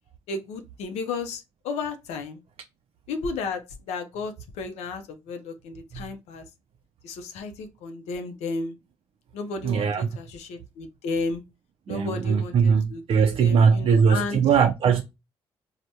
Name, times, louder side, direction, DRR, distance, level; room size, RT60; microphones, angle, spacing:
voice 1, 0.3-2.4 3.1-3.6 3.9-6.4 7.0-8.8 9.3-11.4 11.9-14.4, left 4 dB, 80° left, 0.5 m, -33 dB
voice 2, 9.6-10.1 11.9-15.0, right 6 dB, 55° right, 0.4 m, -20 dB
3.2 x 2.1 x 2.7 m
supercardioid pair, 60°, 11 cm